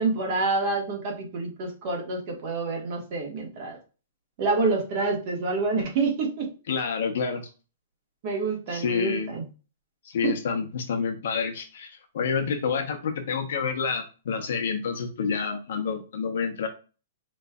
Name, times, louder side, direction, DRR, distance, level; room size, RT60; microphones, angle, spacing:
voice 1, 0.0-3.8 4.4-6.5 8.2-9.4 10.2-10.3, right 3 dB, 40° right, -1 dB, 1.5 m, -27 dB
voice 2, 6.7-7.5 8.7-9.3 10.0-16.7, left 5 dB, 65° left, 5 dB, 0.9 m, -28 dB
5.1 x 3.2 x 2.4 m, 0.34 s
hypercardioid pair, 165°, 0 cm